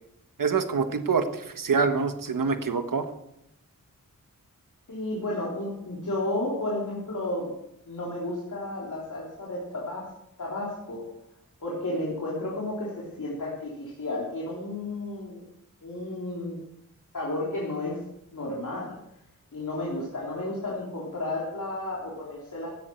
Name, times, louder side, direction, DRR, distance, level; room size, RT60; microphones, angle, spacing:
voice 1, 0.4-1.2 1.5-3.0, right 5 dB, 75° right, 8 dB, 1.5 m, -25 dB
voice 2, 4.9-7.5 7.9-10.1 10.4-11.1 11.6-15.4 15.8-16.6 17.1-18.0 18.3-19.0 19.5-22.7, left 2 dB, 60° left, -5 dB, 3.6 m, -32 dB
16.0 x 11.0 x 4.6 m, 0.80 s
wide cardioid pair, 80°, 33 cm